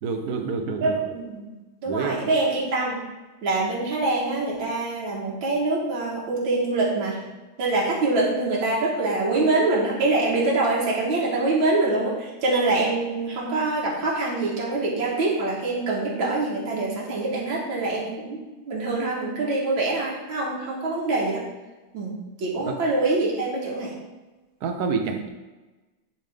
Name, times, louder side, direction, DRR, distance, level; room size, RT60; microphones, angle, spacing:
voice 1, 0.0-1.0 1.9-2.2 22.7-22.8 24.6-25.3, right 5 dB, 60° right, 3 dB, 1.2 m, -27 dB
voice 2, 0.8-1.5 1.8-3.1 3.4-7.3 7.6-18.4 18.7-21.5 21.9-23.9 25.0-25.2, right 2 dB, 85° right, -5 dB, 2.2 m, -25 dB
10.0 x 3.7 x 3.5 m, 1.1 s
omnidirectional pair, 2.1 m